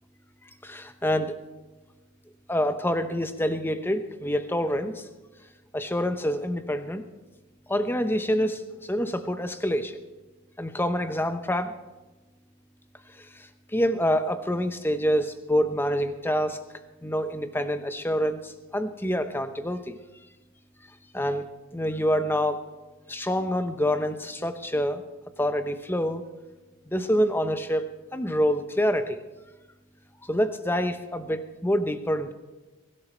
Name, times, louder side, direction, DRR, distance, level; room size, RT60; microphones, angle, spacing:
voice 1, 0.6-1.3 2.5-5.1 5.7-7.0 7.7-10.0 10.6-11.7 13.2-16.6 17.0-20.0 21.1-21.5 21.7-22.6 23.1-25.0 25.4-26.3 26.9-29.2 30.2-32.3, equal, 10° left, 9 dB, 0.8 m, -27 dB
22.5 x 12.0 x 4.5 m, 1.2 s
head